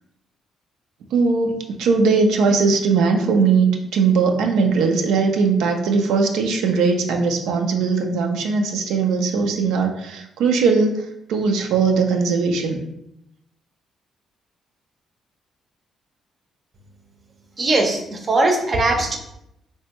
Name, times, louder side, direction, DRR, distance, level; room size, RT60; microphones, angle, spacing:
voice 1, 1.1-12.8, right 4 dB, 85° right, 3 dB, 0.4 m, -19 dB
voice 2, 17.6-19.2, right 2 dB, 35° right, 3 dB, 0.6 m, -20 dB
3.3 x 2.2 x 2.9 m, 0.81 s
cardioid pair, 90°, 0 cm